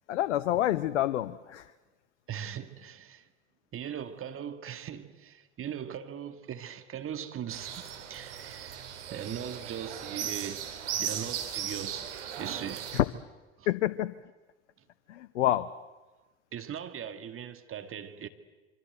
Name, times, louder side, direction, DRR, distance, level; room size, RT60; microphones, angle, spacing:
voice 1, 0.1-1.7 12.9-13.1 13.7-14.1 15.1-15.7, left 13 dB, 75° left, 0.8 m, -27 dB
voice 2, 2.3-3.3 3.7-7.8 8.1-10.6 10.9-13.0 13.6-13.7 16.5-18.3, right 9 dB, 35° right, 2.0 m, -40 dB
sound 1, 7.5-13.0, right 9 dB, 75° right, 3.2 m, -37 dB
27.0 x 25.0 x 8.0 m
hypercardioid pair, 75°, 35 cm